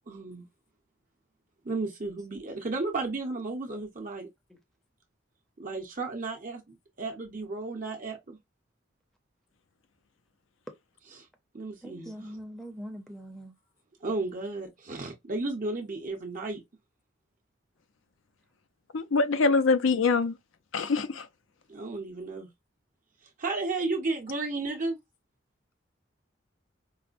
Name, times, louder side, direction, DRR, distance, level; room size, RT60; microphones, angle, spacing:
voice 1, 0.1-0.5 1.6-4.3 5.6-8.4 11.0-11.3 11.5-12.4 14.0-16.6 21.7-22.5 23.4-25.0, right 3 dB, 40° right, 0.7 m, -33 dB
voice 2, 11.8-13.5, equal, ahead, 0.6 m, -42 dB
voice 3, 18.9-20.4 20.7-21.3, left 4 dB, 90° left, 0.6 m, -24 dB
4.7 x 2.1 x 2.4 m
head